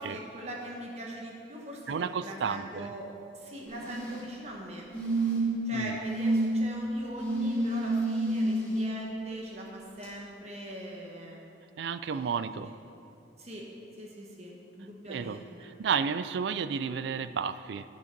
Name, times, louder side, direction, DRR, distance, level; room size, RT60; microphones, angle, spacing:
voice 1, 0.0-4.9 5.6-11.4 12.1-12.5 13.4-13.7 14.0-15.7, right 1 dB, 35° right, -1 dB, 1.1 m, -41 dB
voice 2, 1.9-2.9 5.7-6.0 11.8-12.7 15.0-17.8, right 6 dB, 70° right, 13 dB, 0.4 m, -32 dB
sound 1, 3.7-4.2 4.9-5.6 6.0-6.5 7.2-8.8 10.0-10.1, right 2 dB, 5° left, 2.6 m, -29 dB
10.0 x 6.3 x 5.9 m, 2.6 s
head